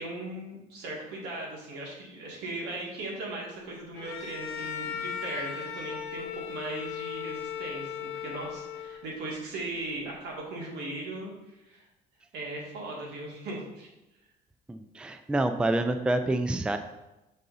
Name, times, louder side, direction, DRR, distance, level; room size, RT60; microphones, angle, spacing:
voice 1, 0.0-11.9 12.3-13.9, right 2 dB, 80° right, -2 dB, 2.0 m, -38 dB
Bowed string instrument, 4.0-9.2, left 8 dB, 75° left, 0.6 m, -37 dB
voice 2, 14.7-16.8, right 2 dB, 5° right, 8 dB, 0.3 m, -27 dB
5.5 x 3.7 x 5.4 m, 0.96 s
cardioid pair, 110°, 17 cm